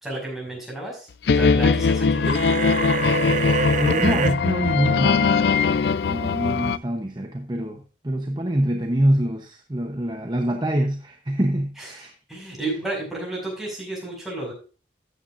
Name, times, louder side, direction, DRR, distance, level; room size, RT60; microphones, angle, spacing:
voice 1, 0.0-2.6 11.8-11.9 12.3-14.5, right 2 dB, ahead, 5.7 m, -32 dB
sound 1, 1.3-6.8, left 5 dB, 70° left, 0.4 m, -21 dB
sound 2, 2.2-4.3, right 7 dB, 45° right, 0.4 m, -26 dB
voice 2, 3.8-5.5 6.0-12.1, right 1 dB, 25° right, 0.9 m, -25 dB
13.5 x 8.8 x 2.6 m
head